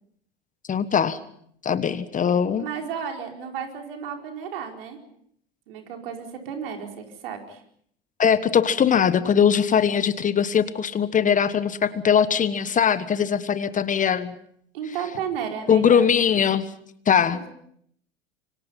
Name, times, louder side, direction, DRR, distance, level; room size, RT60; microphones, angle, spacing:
voice 1, 0.7-1.2 1.6-2.7 8.2-14.3 15.7-16.6 17.1-17.4, left 7 dB, 25° left, 14 dB, 1.4 m, -21 dB
voice 2, 2.6-5.0 5.7-7.6 14.7-16.1 17.3-17.4, right 7 dB, 65° right, 3 dB, 5.1 m, -33 dB
27.0 x 24.5 x 5.7 m, 0.69 s
hypercardioid pair, 85°, 30 cm